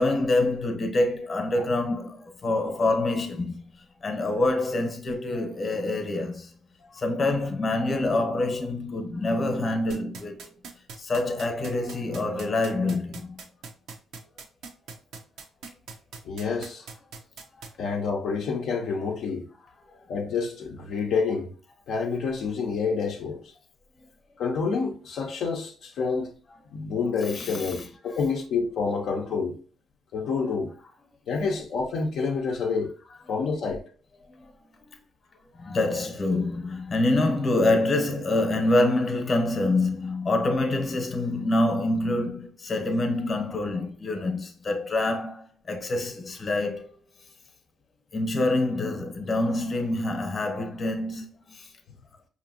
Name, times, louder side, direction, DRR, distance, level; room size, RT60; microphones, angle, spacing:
voice 1, 0.0-3.6 4.0-6.5 6.9-10.5 11.0-13.4 27.3-27.9 34.4-34.5 35.6-46.9 48.1-51.7, left 2 dB, 35° left, 0.9 m, -26 dB
sound 1, 9.9-17.7, right 5 dB, 80° right, 0.7 m, -41 dB
voice 2, 16.2-16.9 17.8-19.5 20.1-21.5 21.9-23.4 24.4-26.3 26.7-29.6 30.1-30.7 31.3-32.9 33.3-33.8, left 5 dB, 75° left, 0.6 m, -28 dB
5.1 x 2.8 x 2.8 m
cardioid pair, 90°, 0 cm